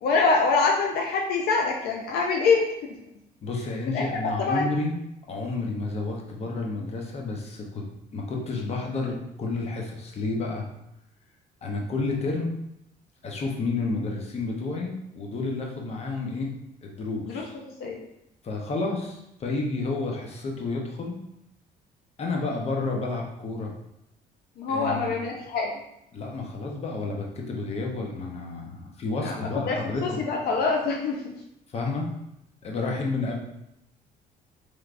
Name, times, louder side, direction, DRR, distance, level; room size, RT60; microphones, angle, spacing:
voice 1, 0.0-3.0 3.9-4.7 17.3-18.0 24.6-25.7 29.2-31.3, left 4 dB, 70° left, 0 dB, 0.5 m, -25 dB
voice 2, 3.4-5.0 5.3-7.8 8.1-10.6 11.6-12.5 13.2-16.5 16.8-17.5 18.4-21.2 22.2-23.7 24.7-25.2 26.1-30.2 31.7-32.1 32.6-33.4, left 3 dB, 40° left, 0 dB, 0.7 m, -30 dB
3.3 x 3.1 x 2.5 m, 0.82 s
cardioid pair, 110°, 17 cm